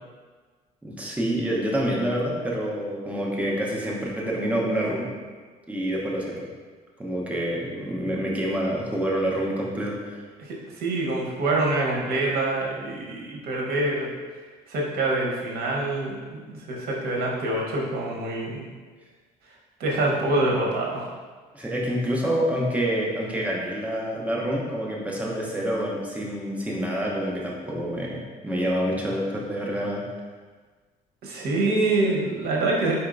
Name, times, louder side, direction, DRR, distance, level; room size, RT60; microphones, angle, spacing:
voice 1, 0.8-5.1 5.7-6.5 7.0-10.2 21.5-30.0, equal, 10° right, -3 dB, 0.9 m, -27 dB
voice 2, 10.4-14.1 14.7-18.6 19.8-21.1 31.2-32.9, right 2 dB, 65° right, -2 dB, 1.1 m, -25 dB
4.4 x 4.3 x 2.6 m, 1.4 s
cardioid pair, 110°, 17 cm